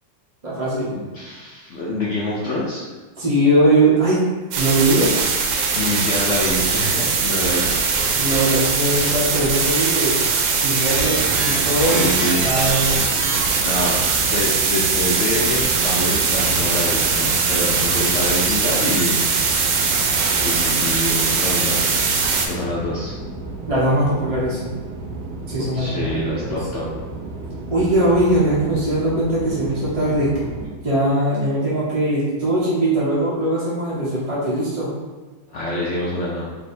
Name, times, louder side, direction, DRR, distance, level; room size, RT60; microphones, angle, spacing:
voice 1, 0.4-1.0 3.2-4.2 4.6-5.1 8.2-10.2 10.5-12.1 12.4-12.9 23.7-24.7 25.5-26.0 26.3-26.5 27.7-30.3 30.8-34.9, right 1 dB, 35° right, -8 dB, 0.6 m, -20 dB
voice 2, 0.9-2.8 5.8-7.7 8.0-8.1 11.8-12.4 13.6-14.0 14.3-19.2 19.5-19.8 20.4-21.9 22.4-23.1 25.7-26.9 35.5-36.6, left 1 dB, 80° left, -5 dB, 0.6 m, -26 dB
sound 1, 4.5-22.5, right 5 dB, 85° right, 1.3 m, -20 dB
sound 2, 10.9-30.7, right 2 dB, 65° right, 1.1 m, -33 dB
3.3 x 2.9 x 4.2 m, 1.3 s
omnidirectional pair, 2.0 m